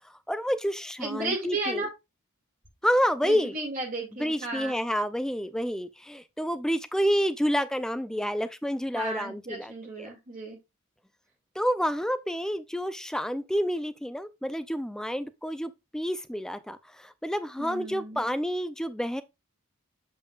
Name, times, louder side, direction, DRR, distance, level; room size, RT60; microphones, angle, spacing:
voice 1, 0.3-1.9 2.8-3.6 4.2-9.7 10.0-10.1 11.6-19.2, equal, 5° left, 0.4 m, -29 dB
voice 2, 1.0-1.9 3.2-4.8 8.9-10.6 17.6-18.3, right 2 dB, 40° right, 2.2 m, -34 dB
7.3 x 5.4 x 2.4 m
head